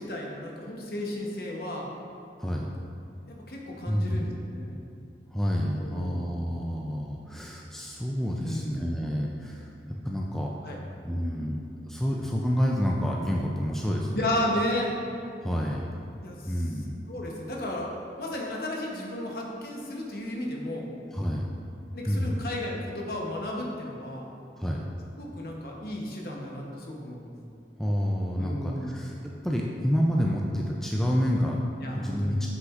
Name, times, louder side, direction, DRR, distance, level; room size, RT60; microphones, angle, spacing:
voice 1, 0.0-1.9 3.3-4.8 5.8-6.3 8.4-9.0 10.6-10.8 14.1-14.9 16.2-16.5 17.1-17.9 18.2-20.9 21.9-24.3 25.2-27.3 28.4-29.0 31.8-32.4, left 1 dB, 55° left, -1 dB, 0.9 m, -33 dB
voice 2, 2.4-2.7 3.9-4.4 5.3-10.5 11.0-14.4 15.4-15.9 16.5-17.0 21.1-21.5 22.1-22.5 24.6-24.8 27.8-32.5, equal, ahead, -2 dB, 0.3 m, -29 dB
7.6 x 6.3 x 2.5 m, 2.5 s
head